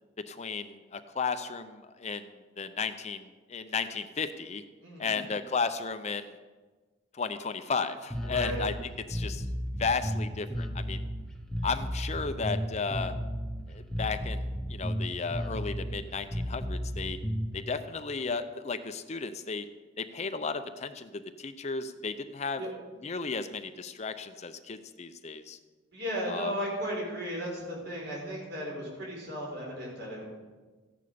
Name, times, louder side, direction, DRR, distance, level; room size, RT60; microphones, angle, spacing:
voice 1, 0.2-2.3 2.6-4.6 5.0-6.3 7.1-8.7 9.1-9.4 9.8-11.0 11.6-13.1 13.7-17.2 17.5-19.7 20.0-22.6 23.0-25.6 26.3-26.5, left 5 dB, 35° left, 10 dB, 0.5 m, -34 dB
voice 2, 4.8-5.2 8.2-8.6 22.6-22.7 25.9-30.3, equal, 55° right, -2 dB, 5.4 m, -35 dB
Bass guitar, 8.1-17.6, equal, 5° left, 1.0 m, -34 dB
15.0 x 10.5 x 5.1 m, 1.3 s
head